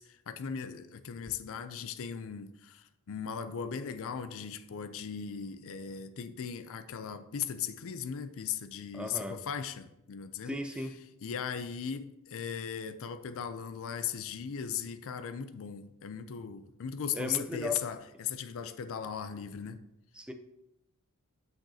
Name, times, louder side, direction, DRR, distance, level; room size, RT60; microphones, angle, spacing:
voice 1, 0.0-10.6 11.2-19.8, left 7 dB, 65° left, 0.4 m, -38 dB
voice 2, 8.9-9.4 10.4-10.9 17.1-17.8 20.1-20.3, left 1 dB, 5° right, 0.5 m, -36 dB
7.7 x 5.8 x 2.8 m
head